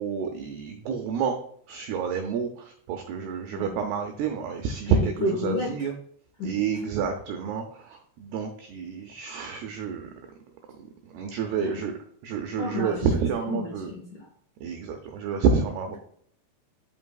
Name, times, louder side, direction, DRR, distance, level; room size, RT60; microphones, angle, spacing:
voice 1, 0.0-1.4 1.7-5.1 5.4-5.9 6.4-10.1 11.1-13.9 14.6-16.0, right 6 dB, 85° right, 5 dB, 2.3 m, -29 dB
voice 2, 5.2-5.8 6.4-6.5 11.5-11.9 12.6-14.3, left 1 dB, 70° left, -1 dB, 2.0 m, -31 dB
12.0 x 5.5 x 2.3 m, 0.64 s
omnidirectional pair, 5.4 m